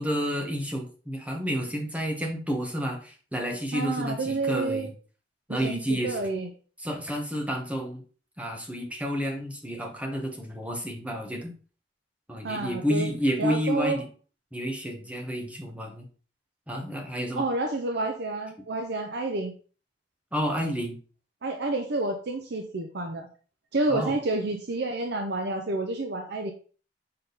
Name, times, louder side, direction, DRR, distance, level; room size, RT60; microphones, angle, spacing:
voice 1, 0.0-4.9 5.5-6.2 6.8-8.0 8.4-11.5 12.3-14.1 14.5-16.1 16.7-17.5 20.3-21.0 23.9-24.2, equal, 10° right, 2 dB, 1.2 m, -30 dB
voice 2, 3.7-4.9 5.5-6.5 12.4-13.1 13.4-14.0 17.4-19.5 21.4-23.3 23.7-26.5, right 2 dB, 65° right, 4 dB, 0.7 m, -29 dB
6.6 x 3.8 x 4.0 m, 0.39 s
head